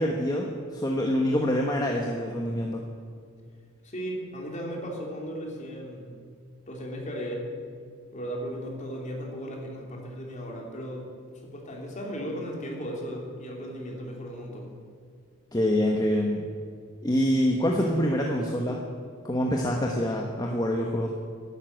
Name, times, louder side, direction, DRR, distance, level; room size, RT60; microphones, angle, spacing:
voice 1, 0.0-2.8 15.5-16.5 17.0-18.8 19.2-21.1, equal, 15° left, 0 dB, 1.2 m, -26 dB
voice 2, 3.8-6.2 6.7-7.5 8.1-11.1 11.4-14.7, equal, 35° left, 0 dB, 3.0 m, -36 dB
12.5 x 11.5 x 9.1 m, 2.2 s
head